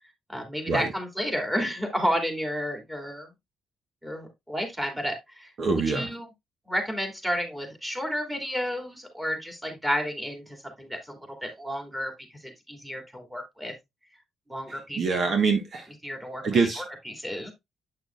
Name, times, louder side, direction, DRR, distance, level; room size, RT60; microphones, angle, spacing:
voice 1, 0.3-3.3 4.0-6.2 6.7-12.1 12.4-13.7 14.5-15.0 16.0-16.4 16.8-17.5, equal, 10° right, 2.9 m, -31 dB
voice 2, 5.6-6.1 14.7-15.9 16.4-16.8, right 4 dB, 50° right, 1.5 m, -25 dB
9.0 x 6.1 x 2.5 m
cardioid pair, 90°, 0 cm